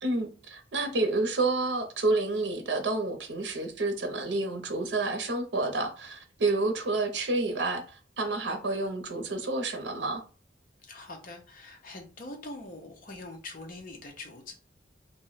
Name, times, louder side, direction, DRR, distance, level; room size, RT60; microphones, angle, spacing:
voice 1, 0.0-10.2, right 2 dB, 75° right, 0.6 m, -29 dB
voice 2, 10.8-14.5, left 2 dB, 50° left, 0.7 m, -43 dB
2.5 x 2.1 x 3.9 m
head